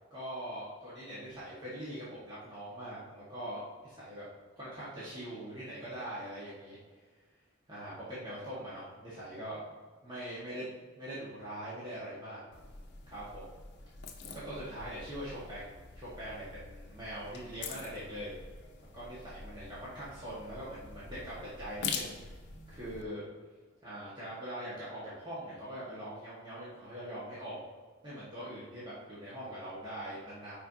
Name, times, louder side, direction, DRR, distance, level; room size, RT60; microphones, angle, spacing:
voice 1, 0.1-4.2 4.6-6.8 7.7-9.6 10.0-12.4 13.1-13.4 14.3-18.3 18.9-22.2 22.7-23.2 23.8-27.6 28.0-30.6, right 1 dB, 20° right, -10 dB, 1.5 m, -42 dB
sound 1, 12.5-23.0, left 5 dB, 55° left, 0.7 m, -45 dB
9.4 x 4.6 x 2.7 m, 1.5 s
head